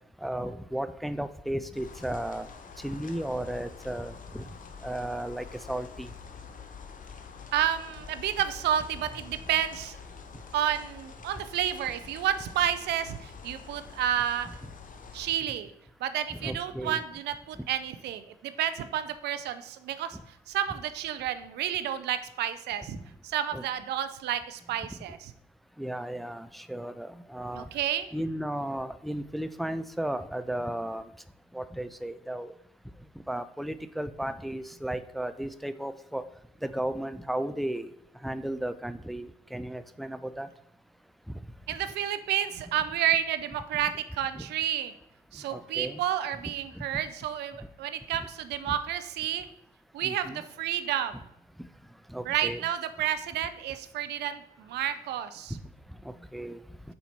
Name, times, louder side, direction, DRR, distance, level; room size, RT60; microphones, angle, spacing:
voice 1, 0.2-2.5 2.8-4.5 4.8-6.1 16.3-17.0 23.5-23.6 25.8-27.7 28.1-31.1 31.5-32.5 33.3-36.3 36.6-37.9 38.2-40.5 44.3-44.5 45.5-46.0 46.8-46.9 48.7-48.8 50.0-50.4 52.1-52.6 55.5-55.6 56.1-56.6, right 1 dB, ahead, 12 dB, 0.4 m, -34 dB
sound 1, 1.7-15.3, left 5 dB, 50° left, 0.8 m, -46 dB
voice 2, 7.5-10.0 10.5-14.5 15.1-15.7 16.0-20.2 20.5-23.0 23.2-25.3 27.5-28.1 41.7-44.9 45.3-49.5 49.9-51.2 52.3-55.6, right 10 dB, 80° right, 12 dB, 0.4 m, -30 dB
5.5 x 4.2 x 4.1 m, 0.77 s
hypercardioid pair, 45°, 17 cm